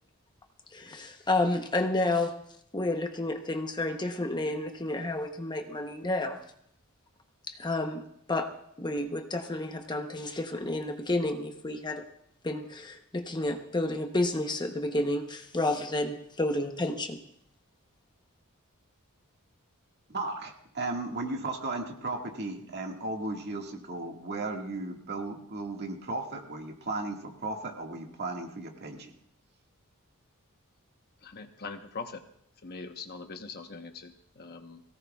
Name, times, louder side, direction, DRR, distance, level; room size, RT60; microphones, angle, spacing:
voice 1, 0.7-2.4 2.7-6.4 7.5-8.0 8.3-8.5 8.8-12.0 12.4-17.2, left 2 dB, 20° left, 5 dB, 0.9 m, -30 dB
voice 2, 20.1-29.1, right 2 dB, 50° right, 2 dB, 1.9 m, -35 dB
voice 3, 31.2-32.2 32.6-34.8, left 4 dB, 45° left, 6 dB, 1.1 m, -42 dB
22.5 x 17.0 x 2.4 m, 0.69 s
head